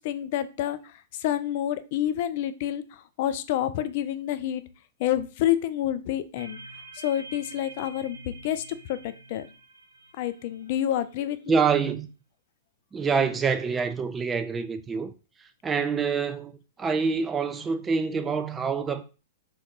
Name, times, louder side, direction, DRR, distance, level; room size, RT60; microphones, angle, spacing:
voice 1, 0.0-4.6 5.0-6.6 6.9-9.5 10.2-11.4, left 11 dB, 45° left, 0.4 m, -28 dB
sound 1, 6.4-11.2, right 2 dB, 80° right, 1.0 m, -47 dB
voice 2, 11.5-12.1 12.9-15.1 15.6-19.0, right 5 dB, 15° right, 0.4 m, -26 dB
3.3 x 2.6 x 3.8 m
figure-of-eight pair, 105°, 0 cm